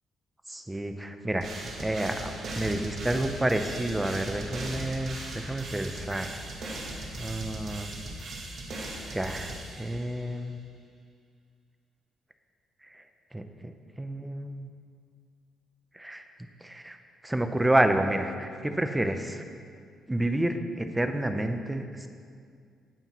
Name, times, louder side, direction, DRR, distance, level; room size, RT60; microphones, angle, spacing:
voice 1, 0.5-6.4 7.2-7.9 8.7-8.8 9.1-10.6 12.9-13.0 13.3-13.4 14.0-14.7 15.9-16.2 16.6-17.0 17.2-19.4 20.1-22.1, right 1 dB, 10° right, 7 dB, 0.7 m, -29 dB
sound 1, 1.4-10.2, right 1 dB, 55° right, 1.6 m, -38 dB
16.0 x 5.6 x 3.1 m, 2.2 s
cardioid pair, 90°, 0 cm